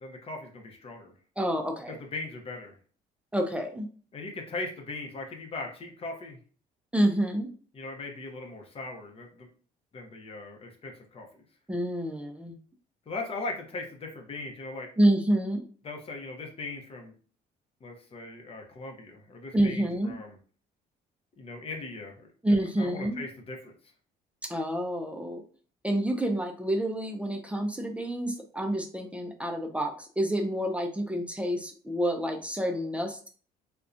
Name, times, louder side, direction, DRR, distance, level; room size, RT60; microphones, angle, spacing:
voice 1, 0.0-1.1 2.1-2.8 4.1-6.4 7.7-9.5 9.9-11.3 13.1-14.9 15.8-17.1 17.8-20.4 21.4-22.2 22.8-23.7, left 3 dB, 35° left, 2 dB, 0.6 m, -39 dB
voice 2, 1.4-2.0 3.3-3.9 6.9-7.5 11.7-12.6 15.0-15.6 19.5-20.1 22.4-23.2 24.4-25.4 25.8-33.3, right 1 dB, 5° right, 4 dB, 0.3 m, -28 dB
2.6 x 2.1 x 2.4 m, 0.42 s
cardioid pair, 110°, 17 cm